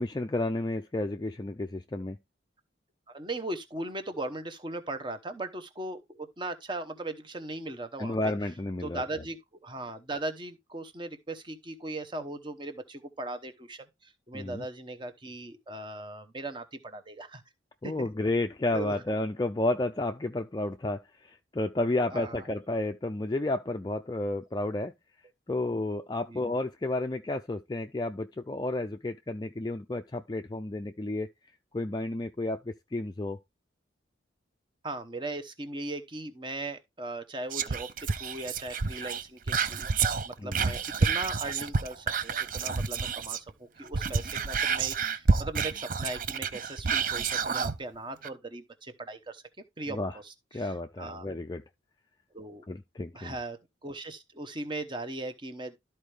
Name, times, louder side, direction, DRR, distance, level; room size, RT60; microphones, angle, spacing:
voice 1, 0.0-2.2 8.0-9.0 14.3-14.6 17.8-24.9 25.5-31.3 31.7-33.4 40.4-40.7 49.9-50.1 50.5-51.6 52.7-53.3, left 2 dB, 20° left, 0.4 m, -31 dB
voice 2, 3.1-8.3 8.8-17.4 17.8-18.1 18.7-19.0 22.1-22.5 26.3-26.4 34.8-49.4 49.8-51.3 52.3-52.6 53.1-55.7, right 2 dB, 25° right, 1.0 m, -39 dB
Whispering, 37.5-43.5 43.8-47.8 48.2-48.3, right 5 dB, 45° right, 0.5 m, -29 dB
13.0 x 4.4 x 3.3 m
head